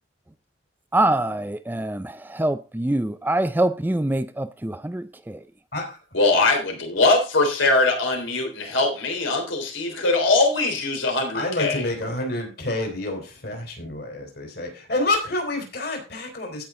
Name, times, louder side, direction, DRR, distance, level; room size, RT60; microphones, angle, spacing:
voice 1, 0.9-5.4, right 1 dB, 10° right, 0.4 m, -24 dB
voice 2, 6.1-11.9, left 2 dB, 90° left, 3.6 m, -21 dB
voice 3, 11.3-16.6, left 2 dB, 55° left, 4.2 m, -28 dB
16.5 x 5.8 x 3.8 m
head